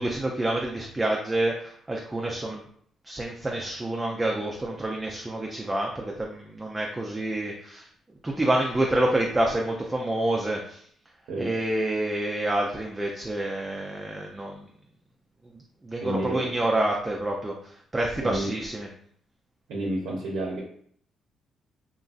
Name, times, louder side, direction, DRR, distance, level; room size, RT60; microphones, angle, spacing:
voice 1, 0.0-2.6 3.0-7.9 8.2-10.8 11.4-14.7 15.8-18.9, right 1 dB, 15° right, 0 dB, 0.4 m, -28 dB
voice 2, 16.0-16.5 18.2-18.5 19.7-20.6, right 1 dB, 90° right, -2 dB, 0.6 m, -30 dB
2.9 x 2.5 x 2.4 m, 0.63 s
cardioid pair, 90°, 0 cm